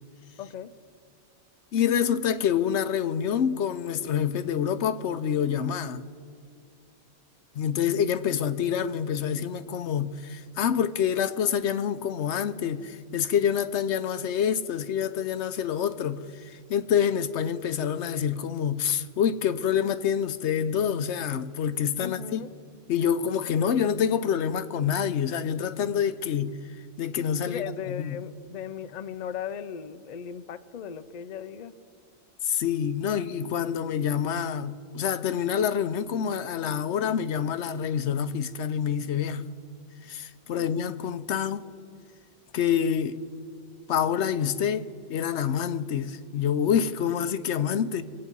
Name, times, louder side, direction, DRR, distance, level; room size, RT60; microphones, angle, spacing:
voice 1, 0.4-0.7 22.0-22.5 27.4-31.7, left 8 dB, 45° left, 0.6 m, -37 dB
voice 2, 1.7-6.0 7.5-22.4 22.9-26.5 27.0-27.6 27.9-28.2 32.4-39.4 40.1-41.6 42.5-43.2 43.9-44.8 45.1-48.0, left 8 dB, 75° left, 0.9 m, -27 dB
24.0 x 8.7 x 5.4 m
omnidirectional pair, 1.2 m